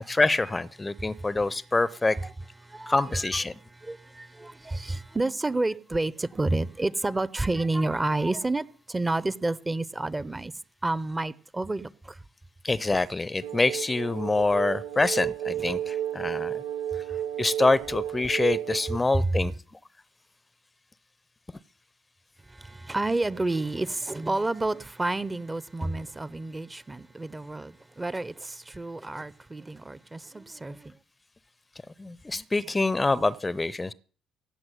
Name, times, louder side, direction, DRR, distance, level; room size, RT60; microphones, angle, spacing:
voice 1, 0.1-2.2 2.9-3.5 12.6-16.5 17.4-19.5 32.0-33.9, left 2 dB, 20° left, 0.7 m, -25 dB
voice 2, 1.0-1.3 2.1-2.3 2.6-3.3 3.7-10.5 10.8-12.2 15.6-15.7 19.1-19.3 22.4-31.0, right 2 dB, 20° right, 0.9 m, -30 dB
sound 1, 13.4-19.0, right 11 dB, 80° right, 0.9 m, -32 dB
16.0 x 6.1 x 9.3 m
hypercardioid pair, 45°, 0 cm